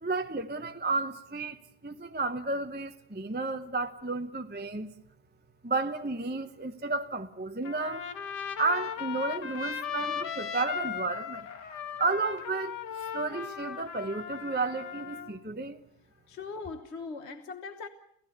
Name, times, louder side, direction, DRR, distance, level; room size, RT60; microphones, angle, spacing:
voice 1, 0.0-4.9 5.6-8.1 8.6-11.5 12.0-15.8, right 3 dB, 10° right, 0.5 m, -32 dB
Trumpet, 7.6-15.3, left 8 dB, 85° left, 1.9 m, -37 dB
voice 2, 16.3-17.9, left 4 dB, 45° left, 1.3 m, -40 dB
29.0 x 15.0 x 8.0 m
omnidirectional pair, 1.8 m